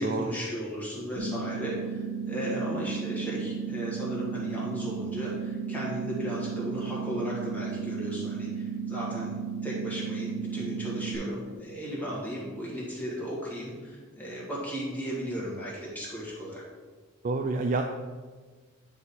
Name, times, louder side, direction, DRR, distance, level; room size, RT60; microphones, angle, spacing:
voice 1, 0.0-9.3 9.6-16.6, equal, 5° left, -6 dB, 1.5 m, -35 dB
sound 1, 1.2-11.2, right 6 dB, 90° right, 1.0 m, -34 dB
voice 2, 17.2-17.8, right 3 dB, 35° right, 4 dB, 0.3 m, -27 dB
9.3 x 3.5 x 4.2 m, 1.4 s
head